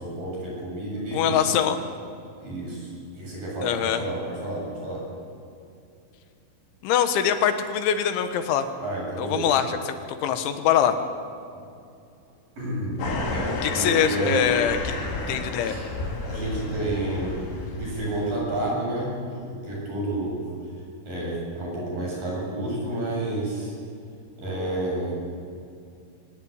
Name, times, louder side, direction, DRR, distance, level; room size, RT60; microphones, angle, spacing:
voice 1, 0.0-1.5 2.4-5.1 8.8-9.5 12.6-13.1 13.3-14.5 15.6-15.9 16.3-17.4 17.7-20.5 21.1-23.7 24.4-25.1, right 1 dB, 45° right, -3 dB, 9.5 m, -30 dB
voice 2, 1.1-1.8 3.6-4.0 6.8-8.7 9.2-10.0 10.2-11.0 13.6-15.0 15.3-15.8, left 9 dB, 80° left, 8 dB, 3.6 m, -23 dB
sound 1, 13.0-18.4, left 2 dB, 65° left, 5.6 m, -32 dB
23.5 x 19.5 x 8.7 m, 2.5 s
omnidirectional pair, 5.4 m